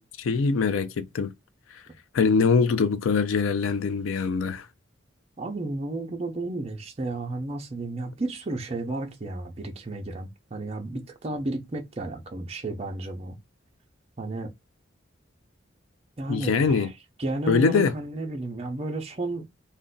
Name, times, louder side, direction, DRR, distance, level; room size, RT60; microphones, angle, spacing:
voice 1, 0.0-1.3 2.1-4.7 16.3-16.9 17.5-17.9, left 5 dB, 90° left, 0.4 m, -23 dB
voice 2, 5.4-13.4 14.2-14.5 16.2-16.9 17.2-19.5, right 2 dB, 30° right, 0.5 m, -32 dB
2.5 x 2.1 x 3.7 m
head